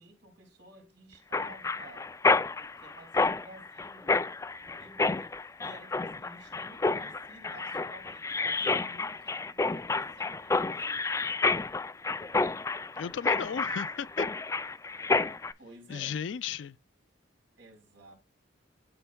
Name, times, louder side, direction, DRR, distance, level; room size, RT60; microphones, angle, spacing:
voice 1, 0.0-2.1 2.5-11.4 15.6-16.2 17.6-18.1, right 1 dB, 75° right, 4.2 m, -53 dB
Mechanisms, 1.3-15.5, left 3 dB, 15° left, 0.3 m, -29 dB
voice 2, 13.0-14.3 15.9-16.8, left 7 dB, 90° left, 0.4 m, -35 dB
12.5 x 4.3 x 2.3 m
head